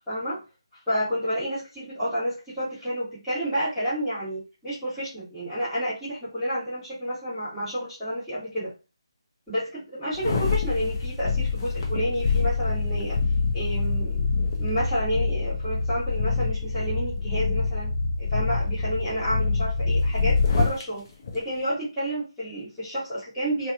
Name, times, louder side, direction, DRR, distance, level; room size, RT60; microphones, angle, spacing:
voice 1, 0.1-0.4 0.9-8.7 9.5-13.2 13.5-14.3 14.6-17.9 18.2-21.0 21.3-23.7, equal, 5° left, -16 dB, 1.3 m, -30 dB
sound 1, 10.1-20.8 21.3-21.4, left 4 dB, 35° left, 0.6 m, -25 dB
2.7 x 2.3 x 2.5 m, 0.30 s
figure-of-eight pair, 155°, 3 cm